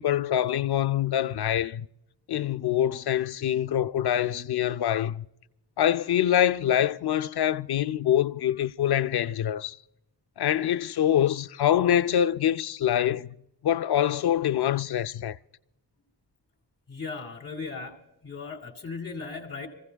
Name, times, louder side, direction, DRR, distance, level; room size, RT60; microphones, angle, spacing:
voice 1, 0.0-1.9 2.3-5.3 5.8-9.8 10.4-13.4 13.6-15.4, left 10 dB, 65° left, 0.5 m, -25 dB
voice 2, 16.9-18.0 18.2-19.7, left 4 dB, 35° left, 2.2 m, -37 dB
26.5 x 15.5 x 2.3 m
cardioid pair, 65°, 42 cm